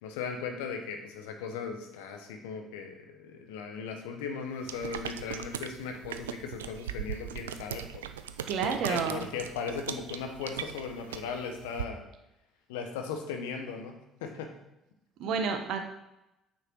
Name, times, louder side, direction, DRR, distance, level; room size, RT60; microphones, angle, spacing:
voice 1, 0.0-8.1 8.6-12.0 12.7-14.5, left 5 dB, 75° left, 4 dB, 1.2 m, -38 dB
sound 1, 4.6-11.8, right 9 dB, 80° right, 0.4 m, -39 dB
voice 2, 8.5-9.2 15.2-15.8, right 6 dB, 60° right, 6 dB, 1.1 m, -30 dB
8.8 x 6.6 x 4.6 m, 0.90 s
figure-of-eight pair, 55°, 0 cm